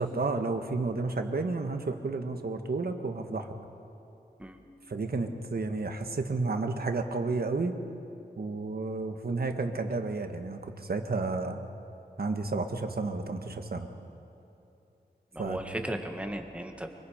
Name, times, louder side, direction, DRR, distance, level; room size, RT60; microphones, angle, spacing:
voice 1, 0.0-3.5 4.9-7.8 8.4-11.6 12.2-13.9 15.4-15.6, right 3 dB, 60° right, 5 dB, 1.5 m, -31 dB
voice 2, 15.3-16.9, right 1 dB, 5° right, 4 dB, 1.7 m, -36 dB
25.0 x 23.5 x 5.1 m, 2.8 s
wide cardioid pair, 95°, 18 cm